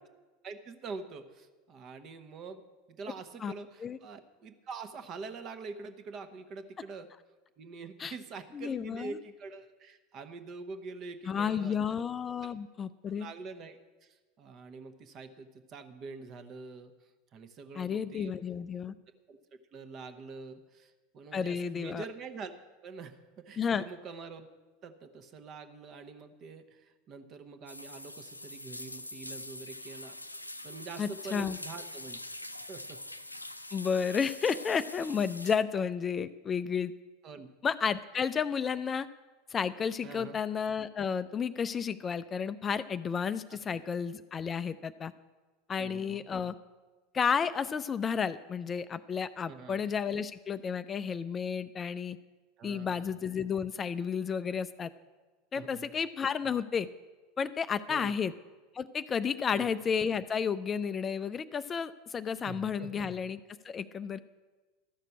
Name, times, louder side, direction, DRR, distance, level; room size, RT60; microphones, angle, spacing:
voice 1, 0.4-2.6 2.9-7.1 7.6-12.0 12.4-12.5 13.2-16.9 17.3-18.4 19.3-19.4 19.7-22.5 22.8-24.5 24.8-30.1 30.6-32.2 32.7-33.0 37.2-37.5 40.0-40.4 43.5-43.6 45.8-46.2 49.5-49.8 52.6-53.0 55.5-55.9 57.9-58.1 59.5-59.7 62.4-63.1, right 4 dB, 35° right, 10 dB, 1.0 m, -45 dB
voice 2, 8.5-9.2 11.3-13.3 17.8-18.9 21.3-22.0 23.6-23.8 31.0-31.6 33.7-36.9 37.6-39.1 39.5-45.1 45.7-46.5 47.1-52.2 52.6-54.9 55.5-56.9 57.4-58.3 58.7-63.4 63.6-64.2, left 6 dB, 25° left, 13 dB, 0.4 m, -32 dB
sound 1, 27.7-35.6, left 1 dB, 90° left, 0.5 m, -44 dB
13.0 x 6.6 x 8.4 m, 1.3 s
figure-of-eight pair, 80°, 0 cm